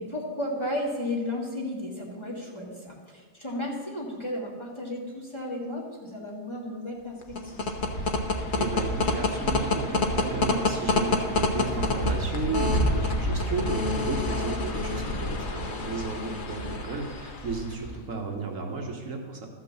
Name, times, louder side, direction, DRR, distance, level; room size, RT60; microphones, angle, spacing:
voice 1, 0.0-7.7, left 1 dB, 20° left, -3 dB, 1.8 m, -34 dB
sound 1, 7.2-18.0, left 2 dB, 40° left, 1.0 m, -28 dB
voice 2, 8.5-19.5, right 4 dB, 65° right, 2 dB, 1.6 m, -33 dB
13.0 x 6.0 x 7.0 m, 1.5 s
omnidirectional pair, 1.5 m